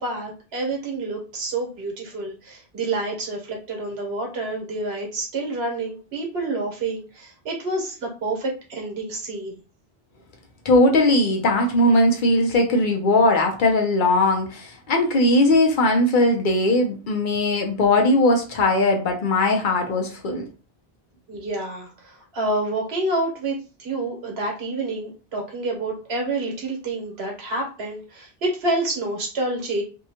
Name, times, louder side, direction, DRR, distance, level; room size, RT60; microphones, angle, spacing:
voice 1, 0.0-9.5 21.3-29.8, right 2 dB, 85° right, 1.2 m, -28 dB
voice 2, 10.6-20.5, left 1 dB, 60° left, 0.7 m, -19 dB
2.7 x 2.2 x 2.7 m
omnidirectional pair, 1.0 m